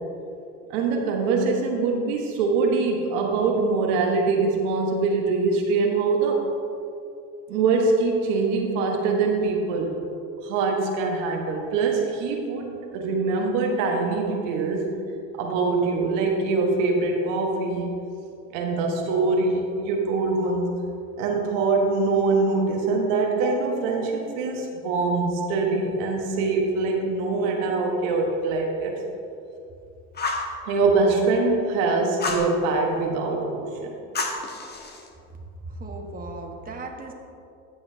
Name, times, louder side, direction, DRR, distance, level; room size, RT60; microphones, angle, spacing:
voice 1, 0.7-6.4 7.5-9.9 10.4-14.9 15.4-17.9 18.5-20.8 21.2-29.0 30.7-33.9, right 3 dB, 80° right, 1 dB, 1.4 m, -23 dB
Fire, 30.1-30.5 32.2-32.5 34.1-35.1, left 3 dB, 25° left, 1.3 m, -29 dB
voice 2, 35.6-37.1, right 2 dB, 25° right, 1 dB, 1.3 m, -36 dB
14.0 x 7.0 x 2.8 m, 2.6 s
supercardioid pair, 90°, 36 cm